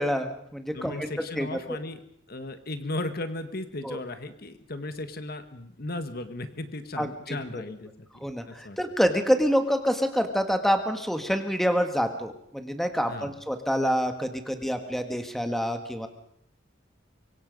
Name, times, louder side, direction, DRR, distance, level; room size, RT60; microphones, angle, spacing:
voice 1, 0.0-1.8 3.8-4.0 7.0-7.6 8.2-16.1, equal, ahead, 6 dB, 1.7 m, -27 dB
voice 2, 0.7-2.0 2.3-8.8 13.0-13.4, left 2 dB, 50° left, 9 dB, 1.5 m, -36 dB
24.5 x 23.5 x 5.3 m, 0.69 s
head